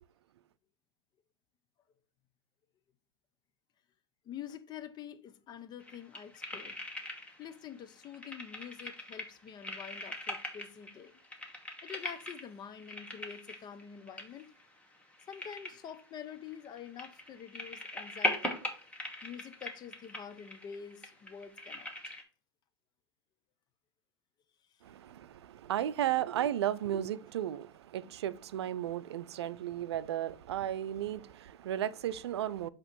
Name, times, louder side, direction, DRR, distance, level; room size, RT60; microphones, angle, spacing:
voice 1, 4.2-6.8 7.4-11.1 11.8-14.5 15.3-18.6 19.2-21.9, left 8 dB, 30° left, 0.7 m, -47 dB
sound 1, 5.8-7.6 7.8-22.2, left 1 dB, 10° left, 1.4 m, -41 dB
voice 2, 24.8-32.7, right 11 dB, 80° right, 0.4 m, -34 dB
7.9 x 3.0 x 4.4 m
hypercardioid pair, 105°, 14 cm